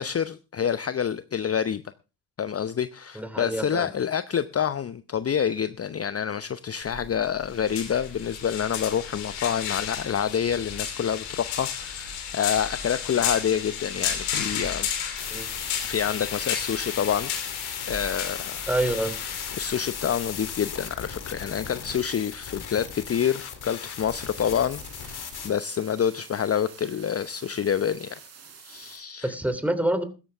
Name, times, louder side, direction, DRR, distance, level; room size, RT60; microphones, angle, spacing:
voice 1, 0.0-1.8 2.4-14.9 15.8-17.3 17.9-18.6 19.6-28.2 28.6-29.3, left 8 dB, 30° left, 14 dB, 0.8 m, -27 dB
voice 2, 3.1-3.9 15.3-15.5 18.7-19.2 29.2-30.0, right 1 dB, 5° right, 10 dB, 3.1 m, -26 dB
sound 1, 6.8-21.5, left 8 dB, 85° left, 2.9 m, -33 dB
sound 2, 15.2-25.5, left 7 dB, 55° left, 3.2 m, -37 dB
sound 3, 24.0-29.0, right 6 dB, 85° right, 4.4 m, -48 dB
16.0 x 13.5 x 3.5 m, 0.32 s
hypercardioid pair, 45°, 45 cm